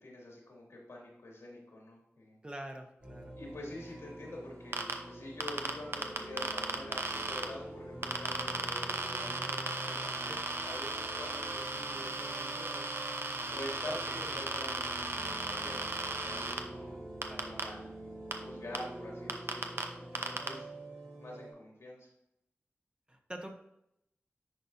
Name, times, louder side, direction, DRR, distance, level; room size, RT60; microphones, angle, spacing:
voice 1, 0.0-2.4 3.3-12.8 13.5-17.9 18.4-20.7 21.2-22.1, left 1 dB, 90° left, -2 dB, 2.2 m, -47 dB
voice 2, 2.4-3.4 10.3-10.4 13.9-14.4 17.3-17.5 23.1-23.6, right 1 dB, 20° right, 3 dB, 1.0 m, -45 dB
sound 1, 3.0-21.5, right 1 dB, 85° right, 2.3 m, -46 dB
sound 2, 4.7-4.9 5.4-7.4 8.0-16.6 17.2-17.6 18.3-18.4 18.7-18.8 19.3-19.8 20.2-20.5, right 3 dB, 60° right, 0.7 m, -36 dB
9.9 x 4.2 x 2.6 m, 0.80 s
wide cardioid pair, 50°, 5 cm